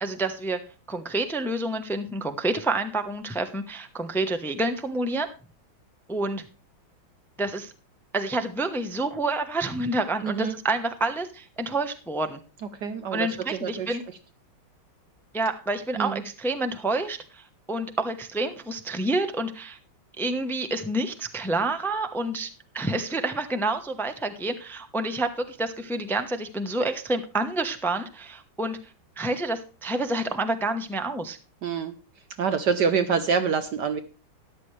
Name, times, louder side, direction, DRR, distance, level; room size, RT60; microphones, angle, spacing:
voice 1, 0.0-0.6 0.9-5.3 6.1-6.5 7.4-7.7 8.1-12.4 13.1-14.0 15.3-19.8 20.2-28.8 29.2-31.4, right 2 dB, 5° left, 8 dB, 0.4 m, -28 dB
voice 2, 10.2-10.5 12.8-14.0 16.0-16.2 31.6-31.9 32.4-34.0, right 6 dB, 65° right, 10 dB, 1.3 m, -26 dB
13.5 x 11.0 x 3.3 m, 0.35 s
omnidirectional pair, 2.2 m